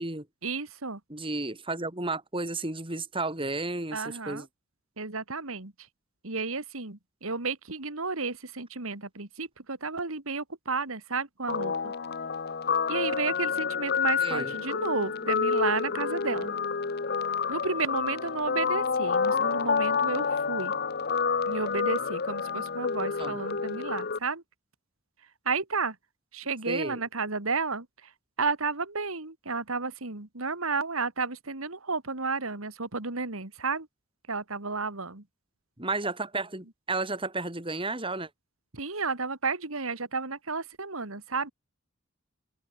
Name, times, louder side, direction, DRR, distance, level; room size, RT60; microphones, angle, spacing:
voice 1, 0.4-1.0 3.9-4.4 5.0-5.7 6.2-11.9 12.9-16.5 17.5-20.7 21.5-24.4 25.5-26.0 26.3-27.9 28.4-33.9 34.3-35.2 38.7-41.5, right 4 dB, 75° right, 2.5 m, -32 dB
voice 2, 1.1-4.5 14.2-14.5 23.2-23.4 26.7-27.0 35.8-38.3, right 2 dB, 25° right, 3.1 m, -32 dB
Guitar, 11.5-24.2, left 5 dB, 50° left, 0.8 m, -29 dB
open air
head